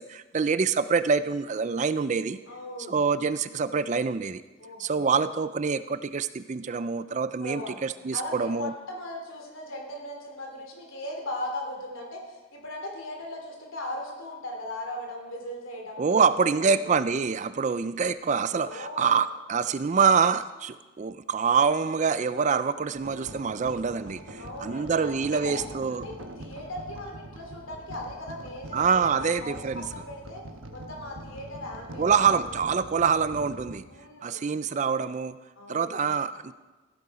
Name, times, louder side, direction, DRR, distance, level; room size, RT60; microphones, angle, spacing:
voice 1, 0.0-2.4 2.9-4.4 4.8-8.7 16.0-26.1 28.7-29.8 32.0-33.8 34.2-35.4 35.7-36.5, right 5 dB, 35° right, 14 dB, 0.3 m, -25 dB
voice 2, 2.5-3.0 4.6-5.2 7.4-7.8 8.1-17.0 18.6-19.2 24.4-25.6 25.9-30.4 30.7-32.6 33.9-34.5 35.6-36.1, left 1 dB, 65° left, 1 dB, 3.1 m, -38 dB
sound 1, 23.0-33.8, right 1 dB, 65° right, 1.2 m, -43 dB
15.5 x 10.5 x 4.9 m, 1.2 s
head